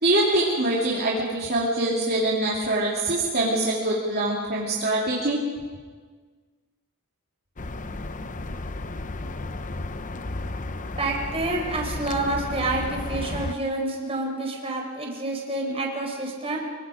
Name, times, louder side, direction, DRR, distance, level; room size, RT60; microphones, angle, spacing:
voice 1, 0.0-5.4, right 1 dB, 45° right, -5 dB, 2.9 m, -24 dB
sound 1, 7.6-13.5, left 2 dB, 35° left, 0.8 m, -33 dB
voice 2, 11.0-16.6, right 2 dB, 25° right, 0 dB, 4.6 m, -28 dB
25.0 x 23.5 x 5.2 m, 1.5 s
head